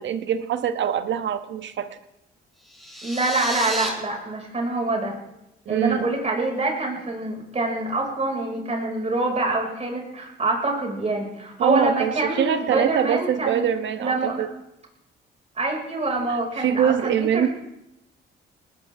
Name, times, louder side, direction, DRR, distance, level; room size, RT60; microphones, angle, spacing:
voice 1, 0.0-2.0 5.7-6.0 11.6-14.5 16.6-17.5, right 9 dB, 70° right, 9 dB, 1.2 m, -23 dB
sound 1, 2.6-3.9, equal, ahead, 5.1 m, -31 dB
voice 2, 3.0-5.2 5.7-13.7 14.0-14.4 15.6-17.5, right 2 dB, 35° right, 1 dB, 5.6 m, -25 dB
19.5 x 18.0 x 3.6 m, 0.87 s
cardioid pair, 90°, 20 cm